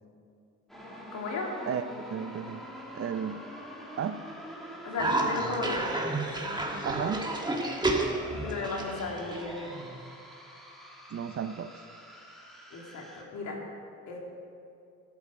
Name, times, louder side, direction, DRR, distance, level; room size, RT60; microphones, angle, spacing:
sound 1, 0.7-13.2, equal, ahead, 2.6 m, -45 dB
voice 1, 1.1-1.5 4.8-5.9 8.3-9.7 12.7-13.6 14.1-14.2, left 3 dB, 70° left, -1 dB, 3.1 m, -35 dB
voice 2, 1.7-2.7 2.9-3.4 4.0-4.2 6.8-7.3 11.1-11.7, right 7 dB, 50° right, 12 dB, 0.7 m, -33 dB
Cough, 5.0-10.0, right 2 dB, 15° right, 1.6 m, -31 dB
13.5 x 13.0 x 5.2 m, 2.5 s
cardioid pair, 90°, 30 cm